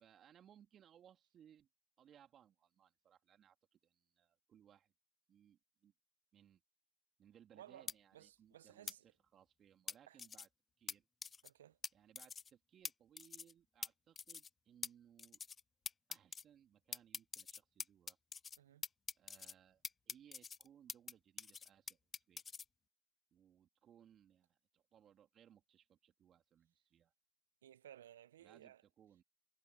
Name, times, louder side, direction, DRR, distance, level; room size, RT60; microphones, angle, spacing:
voice 1, 0.0-1.7 2.0-4.9 5.3-5.9 6.3-6.6 7.2-10.5 10.8-11.1 11.9-15.4 16.1-18.2 19.2-22.0 22.3-22.4 23.3-27.1 28.4-29.2, right 9 dB, 25° right, 3.8 m, -66 dB
voice 2, 7.5-9.0 10.1-10.2 11.4-11.8 18.6-18.8 27.6-28.8, right 11 dB, 70° right, 1.1 m, -59 dB
sound 1, 7.9-8.0 8.9-9.0 9.9-10.5 10.9-11.0 11.2-11.5 11.8-11.9 12.2-12.5 12.8-12.9 13.2-13.5 13.8-13.9 14.2-14.5 14.8-14.9 15.2-15.6 15.9-16.4 16.9-18.6 18.8-19.5 19.8-21.1 21.4-22.6, left 6 dB, 15° left, 0.4 m, -45 dB
hypercardioid pair, 120°, 0 cm